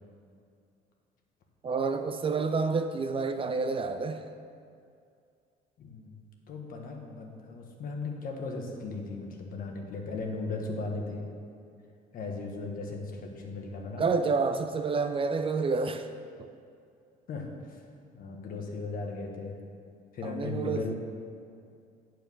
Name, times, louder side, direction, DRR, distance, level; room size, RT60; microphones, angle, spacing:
voice 1, 1.6-4.2 13.8-16.1 16.4-16.5 20.2-20.9, right 4 dB, 30° right, 8 dB, 0.4 m, -29 dB
voice 2, 5.8-11.3 12.1-14.0 17.3-17.8 18.1-19.6 20.1-20.9, left 3 dB, 55° left, 1 dB, 1.4 m, -37 dB
8.8 x 4.6 x 7.0 m, 2.4 s
cardioid pair, 110°, 17 cm